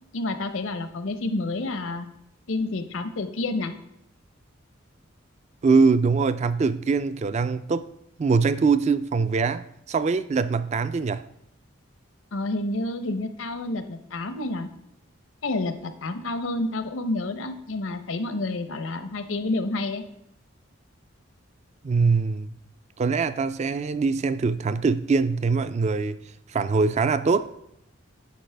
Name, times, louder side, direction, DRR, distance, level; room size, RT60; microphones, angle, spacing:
voice 1, 0.1-2.1 2.5-3.7 12.3-14.7 15.4-20.0, left 2 dB, 80° left, 10 dB, 0.7 m, -29 dB
voice 2, 5.6-7.9 8.2-11.2 21.8-22.5 23.0-26.2 26.5-27.5, right 4 dB, 35° right, 14 dB, 0.3 m, -23 dB
10.0 x 4.9 x 3.4 m, 0.76 s
head